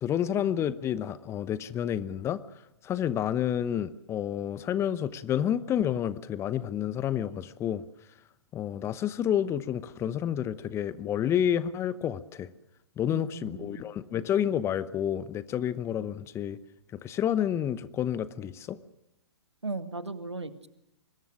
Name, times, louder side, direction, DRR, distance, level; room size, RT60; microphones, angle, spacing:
voice 1, 0.0-2.4 2.8-7.8 8.5-12.5 13.0-16.6 17.0-18.8, left 10 dB, 20° left, 16 dB, 0.9 m, -29 dB
voice 2, 13.1-13.8 19.6-20.7, right 3 dB, 85° right, 11 dB, 1.9 m, -37 dB
24.5 x 21.0 x 6.3 m, 0.88 s
figure-of-eight pair, 120°, 14 cm